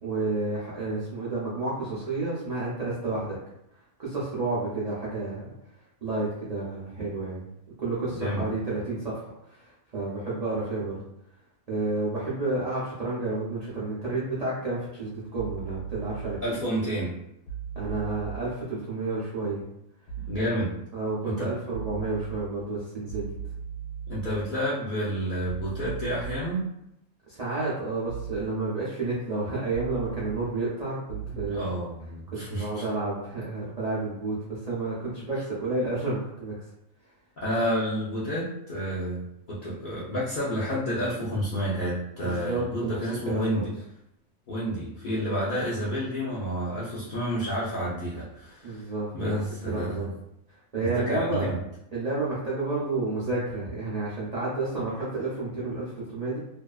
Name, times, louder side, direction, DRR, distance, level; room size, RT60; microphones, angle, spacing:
voice 1, 0.0-3.4 4.0-5.5 6.0-7.4 7.8-11.0 11.7-16.4 17.7-19.6 20.4-20.5 20.9-23.3 27.3-31.7 32.3-36.5 42.2-43.0 43.3-43.6 48.6-49.4 49.7-50.1 50.7-51.5 51.9-56.4, right 3 dB, 65° right, -8 dB, 0.3 m, -30 dB
sound 1, 15.3-16.4 17.5-18.4 20.1-20.4 21.7-22.4 23.1-24.4 25.5-26.4 28.1-28.4 29.7-30.4 31.1-31.5, right 8 dB, 80° left, 1.0 m, -37 dB
voice 2, 16.4-17.1 20.3-20.7 21.2-21.5 24.1-26.6 31.3-32.9 37.4-43.7 44.5-48.8 49.1-50.1 50.8-51.6, equal, 65° left, -9 dB, 0.5 m, -30 dB
2.6 x 2.3 x 2.3 m, 0.82 s
omnidirectional pair, 1.5 m